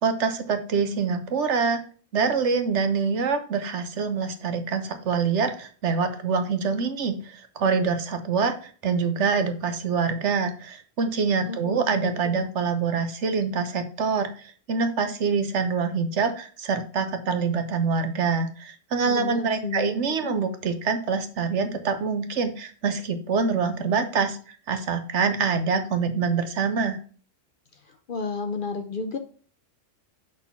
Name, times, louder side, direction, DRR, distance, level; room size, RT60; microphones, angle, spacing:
voice 1, 0.0-1.8 2.1-24.4 24.7-27.0, right 5 dB, 65° right, 8 dB, 1.1 m, -25 dB
voice 2, 11.5-12.5 19.0-20.3 28.1-29.2, left 4 dB, 50° left, 7 dB, 0.7 m, -32 dB
6.2 x 4.0 x 5.6 m, 0.41 s
omnidirectional pair, 1.3 m